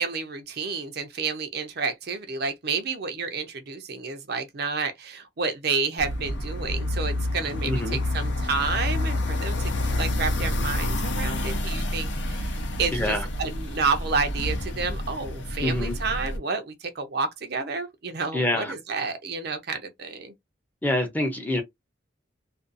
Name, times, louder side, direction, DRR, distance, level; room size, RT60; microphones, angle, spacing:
voice 1, 0.0-20.3, right 4 dB, 55° right, 0.5 m, -30 dB
sound 1, 6.0-16.4, left 1 dB, 65° left, 0.6 m, -28 dB
voice 2, 7.7-8.0 12.9-13.3 15.6-16.0 18.3-18.7 20.8-21.6, left 1 dB, 10° left, 0.6 m, -26 dB
2.5 x 2.3 x 2.5 m
head